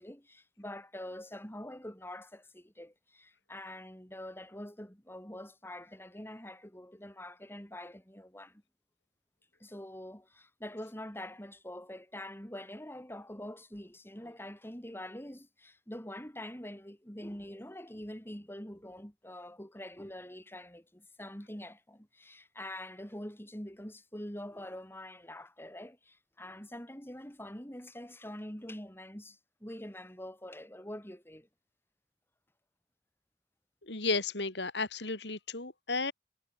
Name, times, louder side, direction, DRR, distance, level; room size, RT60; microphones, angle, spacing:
voice 1, 0.0-8.6 9.6-31.5, left 1 dB, 15° left, 5.7 m, -45 dB
voice 2, 33.9-36.1, left 3 dB, 75° left, 4.4 m, -33 dB
head